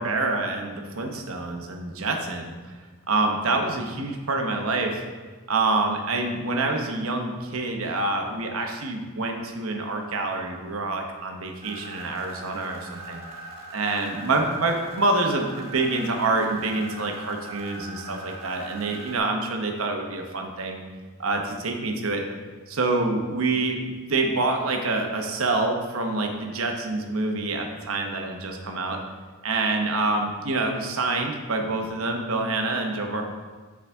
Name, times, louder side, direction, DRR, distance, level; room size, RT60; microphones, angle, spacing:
voice 1, 0.0-2.5 3.1-5.0 5.5-13.2 13.7-20.8 21.2-22.2 22.7-29.0 29.4-33.2, right 3 dB, 75° right, 3 dB, 0.9 m, -26 dB
sound 1, 11.6-19.2, right 2 dB, 30° right, 1.3 m, -41 dB
8.4 x 4.9 x 3.5 m, 1.4 s
head